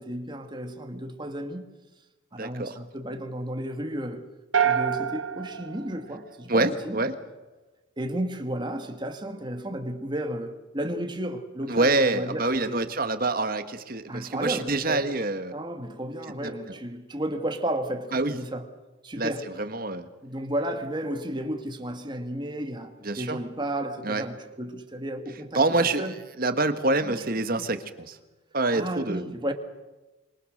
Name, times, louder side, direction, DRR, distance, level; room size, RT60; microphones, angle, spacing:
voice 1, 0.0-1.6 2.3-4.3 4.6-7.0 8.0-12.9 14.1-15.1 15.5-18.7 19.0-19.5 20.2-26.2 27.0-27.2 27.5-27.6 28.7-29.5, right 1 dB, 20° right, 2.0 m, -33 dB
voice 2, 2.4-2.8 6.5-7.1 11.7-15.5 16.4-16.5 18.1-18.4 19.1-19.3 19.6-20.1 23.0-23.4 24.0-24.2 25.5-28.2 28.5-29.2, right 2 dB, 45° right, 1.6 m, -26 dB
sound 1, 4.5-6.8, right 8 dB, 75° right, 1.5 m, -27 dB
26.0 x 24.5 x 6.6 m
head